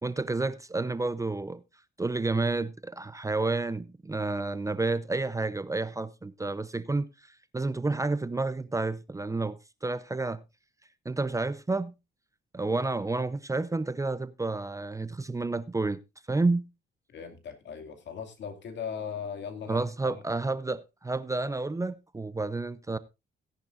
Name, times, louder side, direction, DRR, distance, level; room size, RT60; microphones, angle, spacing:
voice 1, 0.0-1.6 2.0-7.1 7.5-10.4 11.0-11.9 12.5-16.0 16.3-16.7 19.7-23.0, right 3 dB, 15° right, 0.7 m, -30 dB
voice 2, 17.1-20.1, left 7 dB, 65° left, 2.5 m, -38 dB
16.5 x 10.5 x 2.6 m
cardioid pair, 90°, 20 cm